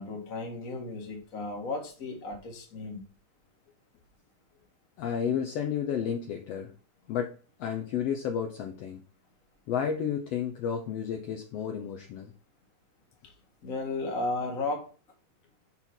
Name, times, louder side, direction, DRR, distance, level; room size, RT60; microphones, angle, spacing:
voice 1, 0.0-3.0 13.6-14.9, left 3 dB, 35° left, 1 dB, 1.5 m, -34 dB
voice 2, 5.0-6.7 7.1-7.3 7.6-9.0 9.7-12.3, left 8 dB, 80° left, 4 dB, 1.4 m, -31 dB
6.1 x 5.8 x 4.4 m, 0.37 s
omnidirectional pair, 3.8 m